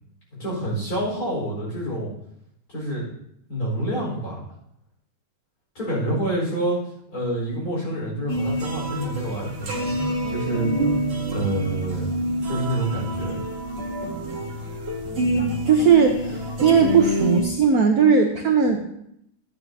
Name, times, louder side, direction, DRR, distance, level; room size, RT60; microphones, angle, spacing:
voice 1, 0.4-2.1 2.7-3.1 3.5-4.4 5.7-6.8 7.1-9.9 10.3-10.7 11.3-12.1 12.5-13.4, right 1 dB, 40° left, -5 dB, 4.8 m, -27 dB
sound 1, 8.3-17.4, right 1 dB, 35° right, 1.3 m, -27 dB
voice 2, 15.7-18.8, right 6 dB, 65° right, 4 dB, 0.9 m, -18 dB
12.5 x 9.1 x 2.7 m, 0.74 s
omnidirectional pair, 2.4 m